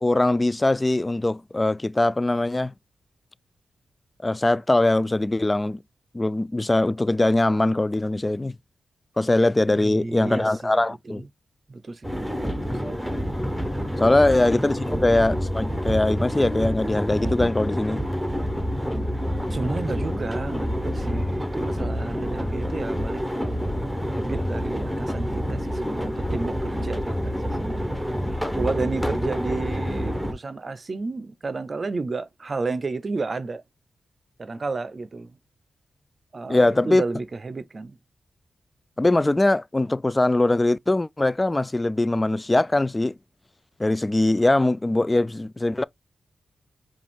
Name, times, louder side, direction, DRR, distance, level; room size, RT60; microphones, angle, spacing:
voice 1, 0.0-2.7 4.2-5.8 6.1-8.6 9.2-11.3 14.0-18.0 36.5-37.0 39.0-43.1 43.8-45.8, left 2 dB, 25° left, 0.3 m, -21 dB
voice 2, 9.8-11.3 11.7-12.4 12.6-13.0 19.5-27.9 28.5-33.6 34.4-35.3 36.3-38.0, right 3 dB, 50° right, 0.6 m, -32 dB
sound 1, 12.0-30.3, equal, ahead, 1.0 m, -27 dB
5.0 x 2.4 x 3.4 m
cardioid pair, 50°, 0 cm